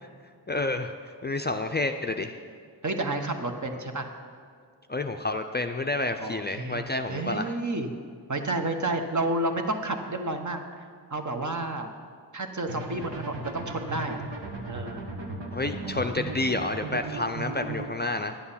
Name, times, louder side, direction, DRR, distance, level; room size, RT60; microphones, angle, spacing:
voice 1, 0.5-0.9 1.2-2.4 4.9-7.6 15.5-18.4, left 2 dB, 25° left, 5 dB, 0.4 m, -29 dB
voice 2, 2.8-4.1 6.2-6.8 7.1-7.9 8.3-10.6 11.1-11.9 12.3-14.2 14.7-15.0, right 2 dB, 45° right, 5 dB, 1.0 m, -30 dB
sound 1, 12.7-17.9, right 3 dB, 85° right, 1.3 m, -36 dB
10.0 x 8.5 x 5.6 m, 2.1 s
wide cardioid pair, 65°, 42 cm